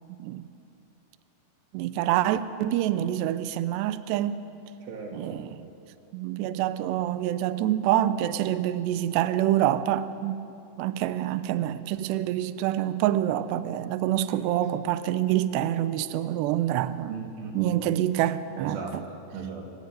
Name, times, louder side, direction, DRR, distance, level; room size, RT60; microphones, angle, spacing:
voice 1, 1.7-4.4 5.1-5.5 6.1-10.4 10.8-17.1 17.5-19.0, right 12 dB, 85° right, 12 dB, 2.4 m, -26 dB
voice 2, 4.8-5.5 14.3-14.4 17.1-17.8 18.6-18.9 19.3-19.7, right 5 dB, 70° right, 0 dB, 5.3 m, -37 dB
26.0 x 15.5 x 9.3 m, 2.7 s
omnidirectional pair, 5.8 m